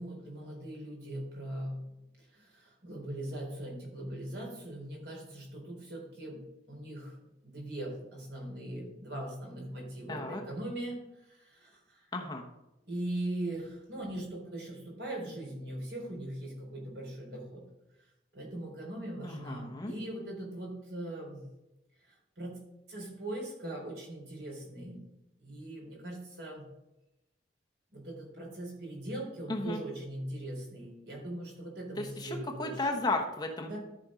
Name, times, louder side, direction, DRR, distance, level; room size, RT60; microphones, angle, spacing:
voice 1, 0.0-1.8 2.2-6.4 6.7-7.1 7.4-12.1 12.9-17.6 18.3-21.5 22.0-22.6 22.9-25.0 25.4-26.6 27.9-32.9 33.7-33.8, right 1 dB, 65° right, -1 dB, 3.8 m, -40 dB
voice 2, 10.1-10.4 12.1-12.4 19.2-19.9 29.5-29.8 32.0-33.8, left 2 dB, 20° left, 2 dB, 1.0 m, -34 dB
13.0 x 5.2 x 5.0 m, 0.94 s
head